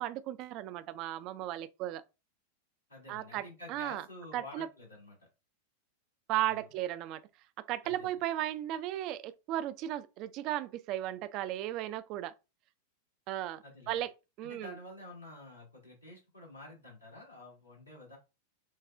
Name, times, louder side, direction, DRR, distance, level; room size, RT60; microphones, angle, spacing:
voice 1, 0.0-2.0 3.1-3.4 3.7-4.0 4.3-4.7 6.3-7.2 7.7-12.3 13.3-14.1 14.4-14.7, right 13 dB, 40° right, 0.3 m, -35 dB
voice 2, 2.9-5.3 6.5-6.7 7.8-8.1 13.6-14.0 14.4-18.2, left 2 dB, 85° left, 2.0 m, -50 dB
6.2 x 2.3 x 2.4 m
figure-of-eight pair, 90°, 0 cm